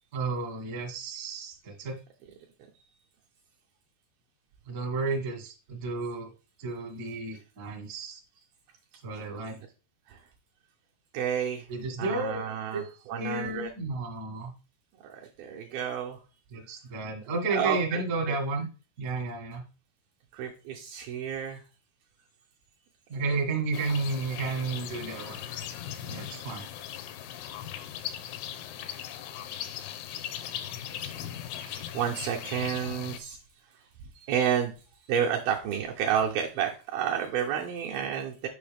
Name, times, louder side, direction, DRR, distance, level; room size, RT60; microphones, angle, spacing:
voice 1, 0.1-1.9 4.7-6.3 6.6-8.2 9.0-9.6 11.7-12.4 12.7-12.8 13.2-14.5 16.5-18.6 19.0-19.6 23.1-25.4 26.1-26.6, right 3 dB, 55° right, 0 dB, 1.0 m, -32 dB
voice 2, 11.1-11.7 12.0-13.7 15.0-16.2 17.5-18.4 20.3-21.6 25.9-26.2 28.1-28.4 31.6-33.4 34.2-34.7 35.1-38.5, right 8 dB, 75° right, 0 dB, 2.3 m, -31 dB
sound 1, 23.7-33.2, left 10 dB, 80° left, 2.6 m, -39 dB
7.0 x 5.5 x 3.4 m, 0.33 s
omnidirectional pair, 4.9 m